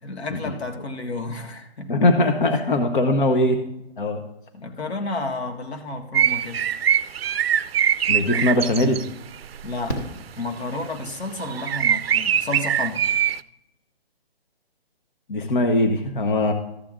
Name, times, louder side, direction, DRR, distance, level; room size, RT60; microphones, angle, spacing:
voice 1, 0.0-1.9 2.2-2.8 4.5-6.6 9.6-10.0 10.4-13.1, left 2 dB, 90° left, 5 dB, 1.8 m, -31 dB
voice 2, 1.9-3.6 4.0-4.2 8.1-9.0 15.3-16.5, left 1 dB, 55° left, 6 dB, 1.1 m, -21 dB
sound 1, 6.1-9.1 9.3-9.8 11.0-11.1 11.4-13.4, right 9 dB, 70° right, 0.5 m, -22 dB
Fireworks, 9.9-11.2 13.0-13.1 13.3-13.4, right 1 dB, 15° left, 0.9 m, -34 dB
13.5 x 7.5 x 3.7 m, 0.83 s
hypercardioid pair, 175°, 31 cm